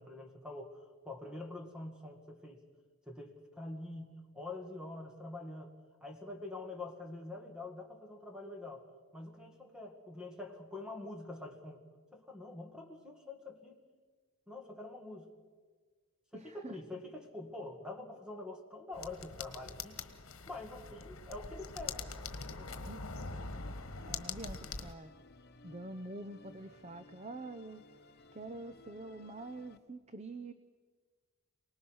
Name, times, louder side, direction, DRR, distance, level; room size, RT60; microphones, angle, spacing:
voice 1, 0.0-2.6 3.1-5.7 6.0-8.8 9.1-11.8 12.1-13.8 14.5-15.3 16.3-20.0 20.5-22.1 22.6-22.7, left 2 dB, 5° right, 3 dB, 2.0 m, -45 dB
voice 2, 16.3-16.8 22.8-23.2 24.0-25.1 25.6-27.8 28.3-30.5, right 2 dB, 30° right, 11 dB, 0.7 m, -46 dB
sound 1, 18.9-24.9, left 4 dB, 75° left, 1.4 m, -43 dB
Musical instrument, 23.4-29.8, left 3 dB, 50° left, 1.1 m, -59 dB
28.5 x 19.0 x 6.4 m, 1.5 s
head